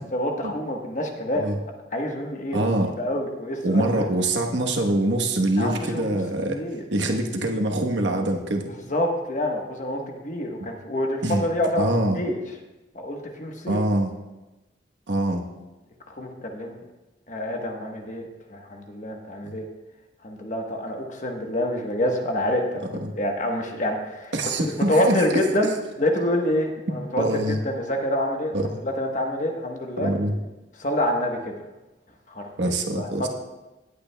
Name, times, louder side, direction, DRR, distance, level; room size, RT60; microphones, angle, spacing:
voice 1, 0.1-1.5 1.9-2.6 3.0-4.1 5.6-6.2 6.5-6.8 8.9-11.9 12.1-12.4 12.9-13.8 16.1-16.8 17.3-19.7 20.2-28.5 28.8-30.1 30.8-31.5 32.3-32.4 32.9-33.3, left 1 dB, 45° left, 2 dB, 1.2 m, -27 dB
voice 2, 2.5-2.9 3.6-6.6 6.9-8.7 10.6-10.7 11.2-11.5 11.8-12.2 13.7-14.1 15.1-15.4 19.4-19.5 23.0-23.1 24.3-25.2 26.9-27.6 28.5-28.7 30.0-30.3 32.6-33.3, right 1 dB, 85° right, 2 dB, 1.1 m, -24 dB
17.5 x 8.5 x 2.3 m, 1.1 s
head